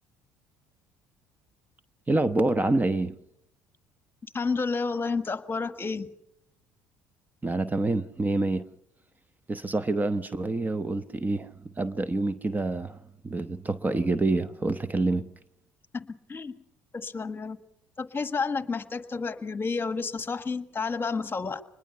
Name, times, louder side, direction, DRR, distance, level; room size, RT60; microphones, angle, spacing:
voice 1, 2.1-3.1 7.4-8.6 9.5-13.0 13.2-15.2, right 2 dB, 20° right, 0.8 m, -27 dB
voice 2, 4.3-6.1 15.9-16.6 16.9-17.6 18.0-21.6, left 4 dB, 25° left, 1.4 m, -30 dB
24.5 x 20.5 x 5.6 m
hypercardioid pair, 65°, 8 cm